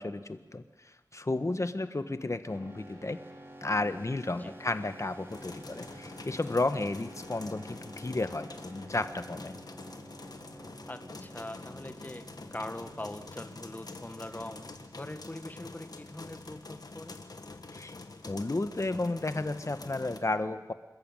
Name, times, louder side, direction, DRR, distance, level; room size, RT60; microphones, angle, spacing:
voice 1, 0.0-3.2 3.6-9.6 17.7-18.0 18.3-20.7, left 2 dB, 45° left, 10 dB, 1.4 m, -33 dB
sound 1, 2.5-16.0, right 1 dB, 35° right, 3.8 m, -51 dB
sound 2, 5.3-20.2, left 3 dB, 65° left, 1.7 m, -46 dB
voice 2, 10.9-14.7 14.9-17.2, left 1 dB, 25° left, 8 dB, 1.7 m, -42 dB
27.0 x 14.0 x 9.1 m, 1.1 s
wide cardioid pair, 70°, 7 cm